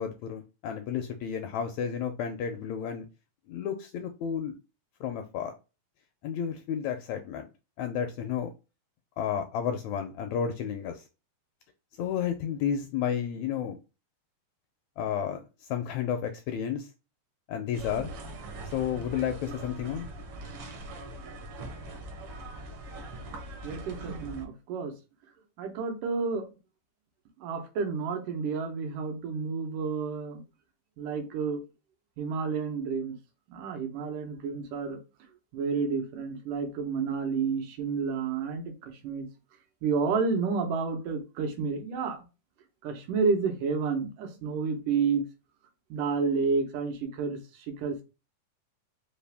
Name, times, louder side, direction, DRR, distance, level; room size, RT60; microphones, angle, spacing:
voice 1, 0.0-3.0 3.5-4.5 5.0-5.5 6.2-7.5 7.8-8.5 9.2-11.0 12.0-13.8 15.0-16.9 17.5-18.1 18.7-20.1, left 8 dB, 80° left, 1.6 m, -32 dB
sound 1, 17.7-24.4, right 1 dB, 65° right, 1.4 m, -41 dB
voice 2, 23.6-24.9 25.6-26.5 27.4-30.4 31.0-31.7 32.2-33.2 33.5-35.0 35.5-39.3 39.8-42.2 42.8-45.2 45.9-48.0, right 5 dB, 85° right, 2.5 m, -30 dB
5.4 x 2.5 x 3.3 m
omnidirectional pair, 3.6 m